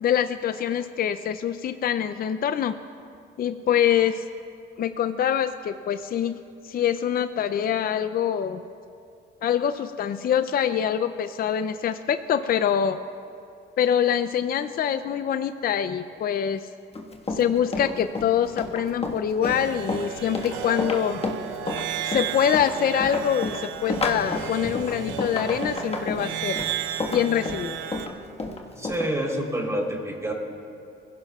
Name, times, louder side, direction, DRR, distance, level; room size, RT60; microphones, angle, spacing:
voice 1, 0.0-2.7 3.4-4.2 4.8-6.4 6.6-8.6 9.4-13.0 13.8-16.7 17.3-21.2 22.0-26.6 27.1-27.8, left 9 dB, 50° left, 10 dB, 0.5 m, -25 dB
Run, 16.9-29.1, left 3 dB, 30° left, 1.5 m, -31 dB
sound 1, 19.4-28.1, right 9 dB, 85° right, 0.8 m, -33 dB
voice 2, 28.8-30.3, right 1 dB, 15° right, -1 dB, 3.6 m, -27 dB
22.0 x 16.0 x 2.4 m, 2.4 s
cardioid pair, 90°, 20 cm